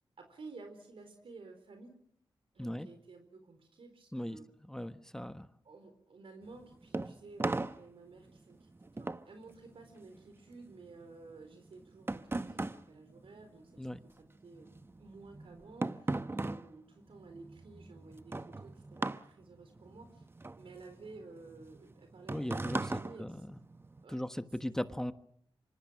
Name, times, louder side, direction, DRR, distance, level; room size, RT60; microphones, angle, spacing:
voice 1, 0.2-2.0 2.5-4.5 5.6-20.2 20.5-23.4 24.0-24.2 24.6-24.7, right 3 dB, 75° right, 6 dB, 4.3 m, -53 dB
voice 2, 4.7-5.5 13.8-14.0 22.3-23.6 24.1-25.1, equal, 5° left, 9 dB, 1.2 m, -38 dB
sound 1, 6.4-14.1 14.4-24.0, right 2 dB, 25° right, 0.9 m, -39 dB
25.5 x 25.0 x 6.4 m, 0.68 s
wide cardioid pair, 90°, 9 cm